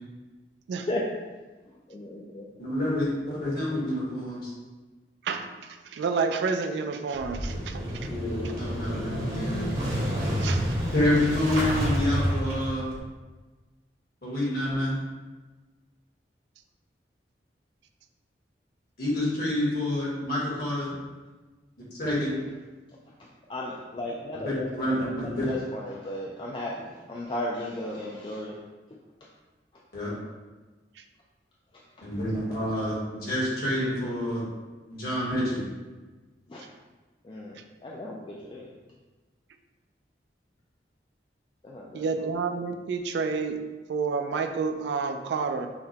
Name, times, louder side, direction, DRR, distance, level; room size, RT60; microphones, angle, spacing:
voice 1, 1.9-2.4 23.2-28.6 32.0-32.1 36.5-36.7 37.2-38.7 41.6-42.3, left 1 dB, 30° left, -3 dB, 0.3 m, -35 dB
voice 2, 2.6-4.5 8.1-9.7 10.9-12.8 14.2-15.0 19.0-20.9 21.9-22.3 24.4-25.5 29.9-30.1 32.0-34.4 34.9-35.6, left 1 dB, 60° left, -7 dB, 1.4 m, -28 dB
voice 3, 5.9-8.1 10.4-10.8 41.9-43.6 43.9-45.7, right 4 dB, 75° right, 7 dB, 0.3 m, -29 dB
Motorcycle / Engine starting, 7.1-13.0, equal, 60° right, 0.9 m, -29 dB
5.7 x 2.2 x 2.7 m, 1.3 s
head